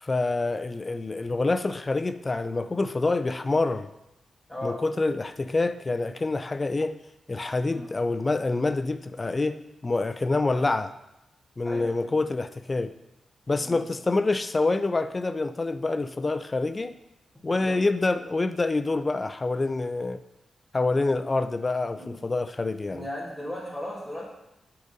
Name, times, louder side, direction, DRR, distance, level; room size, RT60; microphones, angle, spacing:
voice 1, 0.0-3.9 4.6-7.0 7.3-10.9 11.6-12.9 13.5-16.9 17.4-20.2 20.7-23.0, left 3 dB, 30° left, 11 dB, 0.4 m, -26 dB
voice 2, 22.9-24.3, left 1 dB, 5° left, -5 dB, 2.3 m, -36 dB
8.4 x 4.0 x 5.1 m, 0.89 s
wide cardioid pair, 105°, 0 cm